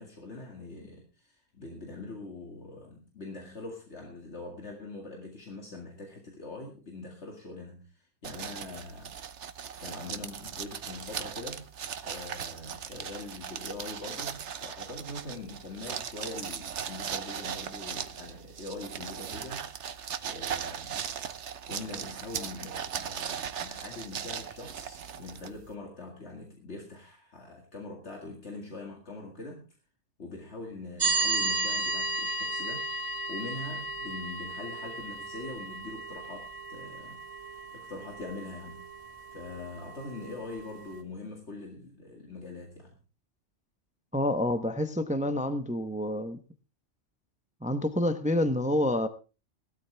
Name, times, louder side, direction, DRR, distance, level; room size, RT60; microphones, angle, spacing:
voice 1, 0.0-9.5 9.8-11.7 12.0-21.1 21.7-29.7 30.2-32.9 33.3-38.8 39.3-43.0, left 2 dB, 65° left, 2.4 m, -43 dB
sound 1, 8.2-25.7, right 8 dB, 75° right, 1.2 m, -38 dB
sound 2, 31.0-41.0, right 2 dB, 45° right, 2.6 m, -34 dB
voice 2, 44.1-46.4 47.6-49.1, left 1 dB, 5° right, 0.7 m, -28 dB
17.0 x 13.0 x 3.3 m
omnidirectional pair, 1.2 m